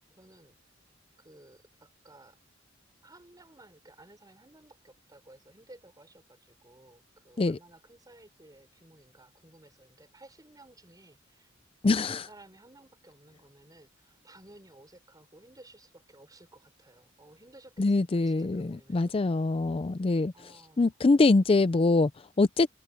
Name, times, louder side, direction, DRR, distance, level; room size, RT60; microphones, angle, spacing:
voice 1, 0.1-0.6 1.2-2.4 3.0-11.5 12.0-19.2 20.3-20.9, right 1 dB, 20° right, 5.3 m, -55 dB
voice 2, 11.8-12.2 17.8-22.7, left 3 dB, 30° left, 0.4 m, -24 dB
head